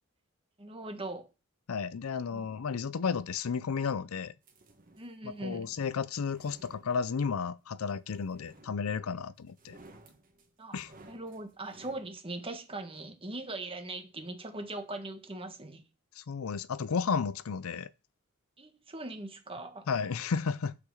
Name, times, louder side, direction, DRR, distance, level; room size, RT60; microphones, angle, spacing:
voice 1, 0.6-1.3 2.3-2.4 5.0-5.7 10.6-10.8 11.1-15.8 18.6-19.9, right 2 dB, 25° right, 1.4 m, -40 dB
voice 2, 1.7-4.3 5.2-9.8 10.7-10.9 16.2-17.9 19.9-20.8, left 5 dB, 85° left, 0.5 m, -33 dB
sound 1, 4.4-5.2 6.1-7.4 8.3-9.1 9.5-12.1, right 2 dB, 40° right, 1.7 m, -57 dB
6.0 x 5.9 x 6.4 m
head